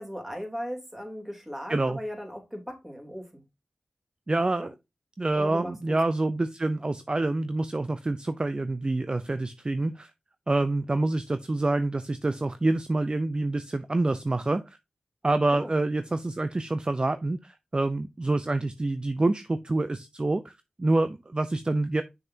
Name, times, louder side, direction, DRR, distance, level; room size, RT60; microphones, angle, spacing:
voice 1, 0.0-3.4 4.6-4.7 5.3-6.0 15.5-15.7, equal, 10° right, 3.1 m, -37 dB
voice 2, 4.3-4.7 5.2-10.1 10.5-14.8 15.2-22.0, right 2 dB, 35° right, 0.6 m, -27 dB
7.1 x 6.5 x 2.8 m
cardioid pair, 55°, 3 cm